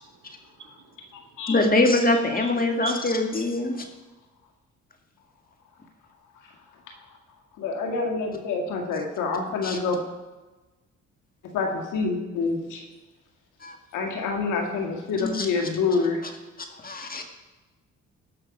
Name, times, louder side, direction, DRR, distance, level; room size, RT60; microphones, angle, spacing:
voice 1, 0.0-1.5 2.5-3.0, right 7 dB, 70° right, 1 dB, 3.2 m, -42 dB
voice 2, 1.5-3.9 9.6-9.8 13.6-13.8 15.2-15.5 16.8-17.2, left 2 dB, 30° left, 4 dB, 1.9 m, -23 dB
voice 3, 7.6-10.0 11.5-12.8 13.9-16.2, left 4 dB, 90° left, 2 dB, 2.1 m, -27 dB
18.0 x 6.3 x 5.3 m, 1.2 s
cardioid pair, 90°, 30 cm